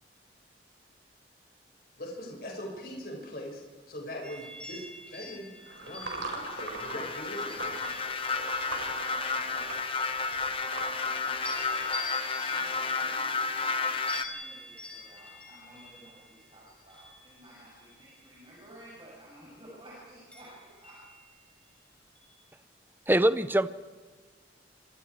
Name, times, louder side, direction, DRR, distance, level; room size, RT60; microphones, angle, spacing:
voice 1, 2.0-3.6 3.9-5.5 5.8-7.7, equal, 55° left, -1 dB, 6.1 m, -41 dB
sound 1, 4.2-8.6 9.1-11.1 11.4-18.4 20.3-21.7 22.1-22.4, left 2 dB, 5° left, 6.5 m, -47 dB
sound 2, 5.7-11.9, right 3 dB, 80° right, 5.4 m, -42 dB
sound 3, 5.9-14.2, left 4 dB, 30° left, 1.0 m, -32 dB
voice 2, 12.4-13.9 14.2-21.0, right 1 dB, 30° right, -7 dB, 7.8 m, -53 dB
voice 3, 23.1-23.7, right 1 dB, 10° right, 13 dB, 0.6 m, -23 dB
28.5 x 25.5 x 4.8 m, 1.5 s
head